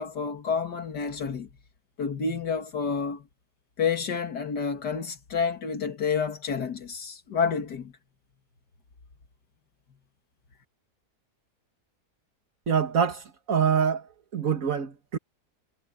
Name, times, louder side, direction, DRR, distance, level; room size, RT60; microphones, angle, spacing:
voice 1, 0.0-1.5 2.0-3.2 3.8-7.9, left 6 dB, 80° left, 2.4 m, -29 dB
voice 2, 12.7-15.2, right 7 dB, 55° right, 2.0 m, -25 dB
omnidirectional pair, 1.7 m